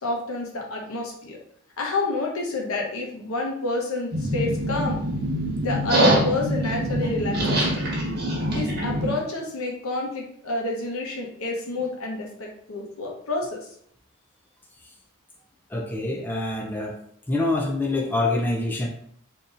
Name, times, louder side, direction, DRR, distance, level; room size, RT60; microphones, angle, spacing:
voice 1, 0.0-1.4 1.8-5.0 5.6-7.8 8.5-13.7, left 3 dB, 65° left, 0 dB, 0.9 m, -29 dB
sound 1, 4.1-9.1, right 1 dB, 50° right, 1.2 m, -24 dB
voice 2, 15.7-17.0 17.3-18.9, left 2 dB, 10° left, -1 dB, 0.4 m, -25 dB
3.9 x 2.8 x 2.5 m, 0.64 s
head